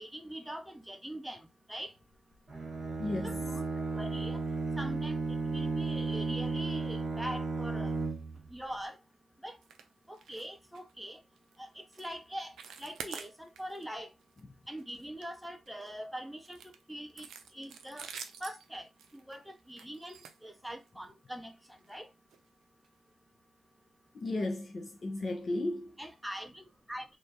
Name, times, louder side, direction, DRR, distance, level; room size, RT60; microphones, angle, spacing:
voice 1, 0.0-1.9 3.2-4.4 4.8-8.0 8.5-9.0 9.4-9.6 10.1-11.2 11.6-12.5 12.8-14.1 14.7-16.6 16.9-17.3 17.5-18.1 18.4-21.5 21.9-22.1 26.0-27.1, equal, 5° right, 0.6 m, -43 dB
Bowed string instrument, 2.5-8.5, right 3 dB, 35° right, 0.8 m, -34 dB
voice 2, 3.0-3.4 24.1-25.9, left 2 dB, 45° left, 0.4 m, -34 dB
sound 1, 9.6-9.9 10.1-10.5 10.7-10.9 11.4-11.6 11.9-12.1 12.4-13.8 14.2-14.4 14.8-15.9 16.4-21.0 21.8-21.9 22.3-22.4 22.8-22.9, right 7 dB, 75° right, 0.3 m, -48 dB
2.3 x 2.0 x 2.6 m
hypercardioid pair, 45°, 0 cm